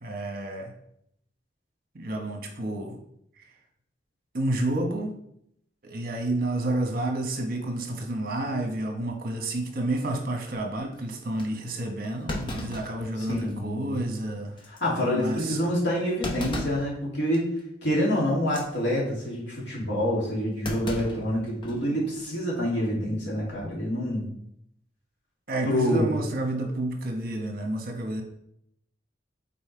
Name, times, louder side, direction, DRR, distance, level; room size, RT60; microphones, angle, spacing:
voice 1, 0.0-0.7 1.9-3.0 4.3-5.1 5.8-14.5 15.0-15.6 25.5-28.2, right 1 dB, 55° right, 3 dB, 1.1 m, -30 dB
Thump thud, 11.4-11.5 12.3-13.6 14.0-14.1 14.6-14.8 16.2-16.9 17.3-17.6 18.4-18.7 20.6-21.8 22.2-22.3 23.4-23.7, left 1 dB, 25° left, 0.9 m, -35 dB
voice 2, 13.2-14.0 14.7-17.5 17.8-24.3 25.6-26.1, equal, 75° left, -5 dB, 2.5 m, -27 dB
5.6 x 4.3 x 4.5 m, 0.74 s
head